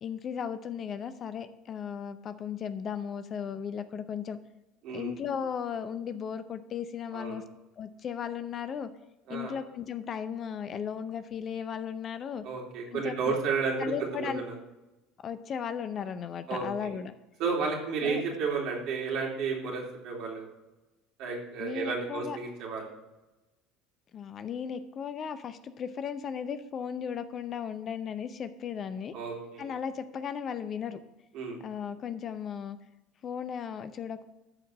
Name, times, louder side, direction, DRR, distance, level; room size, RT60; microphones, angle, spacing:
voice 1, 0.0-4.4 4.9-7.4 7.8-8.9 9.3-12.4 12.9-13.4 13.8-14.4 15.2-17.1 18.0-18.2 21.6-22.4 24.1-29.1 29.6-31.0 31.6-32.8 33.2-34.3, left 7 dB, 40° left, 12 dB, 0.7 m, -36 dB
voice 2, 7.1-7.4 9.3-9.6 12.4-14.5 16.5-16.9 17.4-20.5 21.2-23.0 29.1-29.7 31.3-31.6, right 5 dB, 55° right, -1 dB, 3.1 m, -32 dB
14.0 x 4.6 x 6.2 m, 1.0 s
figure-of-eight pair, 65°, 0 cm